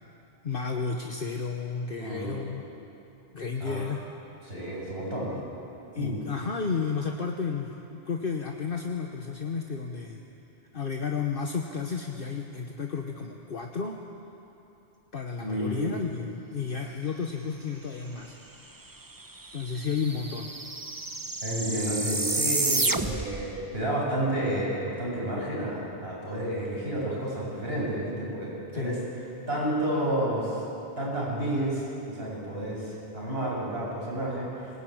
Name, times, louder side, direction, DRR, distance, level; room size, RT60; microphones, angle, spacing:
voice 1, 0.4-2.6 3.3-4.0 5.3-5.4 5.9-10.2 10.7-14.0 15.1-18.3 19.5-20.5 28.7-28.9, left 5 dB, 55° left, 2 dB, 1.3 m, -32 dB
voice 2, 2.0-2.4 3.6-3.8 4.5-5.3 6.0-6.2 15.4-15.9 21.4-29.0 29.5-30.6 31.0-34.7, right 1 dB, 60° right, -5 dB, 7.3 m, -30 dB
sound 1, 18.9-19.0 19.2-23.4, right 2 dB, 20° right, 0.9 m, -30 dB
21.5 x 19.5 x 9.3 m, 2.9 s
omnidirectional pair, 1.1 m